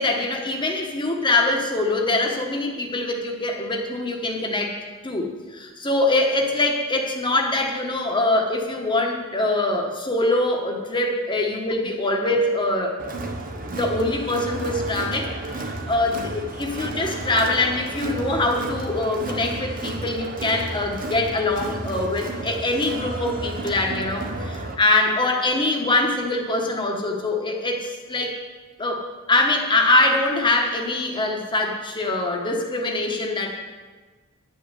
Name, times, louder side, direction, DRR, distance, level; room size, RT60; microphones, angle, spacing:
voice 1, 0.0-4.8 5.0-13.0 13.7-28.4 28.8-33.5, left 2 dB, 25° left, 1 dB, 1.4 m, -23 dB
Crowd, 13.0-24.7, right 2 dB, 40° right, 1.0 m, -32 dB
10.5 x 5.4 x 8.2 m, 1.4 s
head